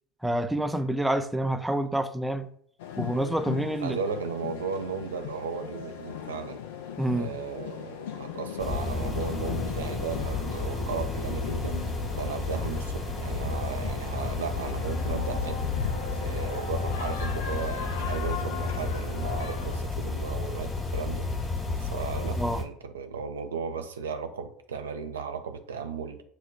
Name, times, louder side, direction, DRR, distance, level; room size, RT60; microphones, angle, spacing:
voice 1, 0.2-2.5 3.0-4.0 7.0-7.3 22.4-22.6, right 1 dB, 5° right, 0.4 m, -28 dB
sound 1, 2.8-19.8, left 8 dB, 75° left, 0.4 m, -38 dB
voice 2, 3.8-6.6 7.1-11.8 12.1-15.6 16.2-21.3 21.8-26.2, right 6 dB, 80° right, 0.4 m, -35 dB
sound 2, 8.6-22.6, left 3 dB, 30° left, 1.1 m, -32 dB
6.0 x 2.2 x 2.2 m
hypercardioid pair, 70°, 0 cm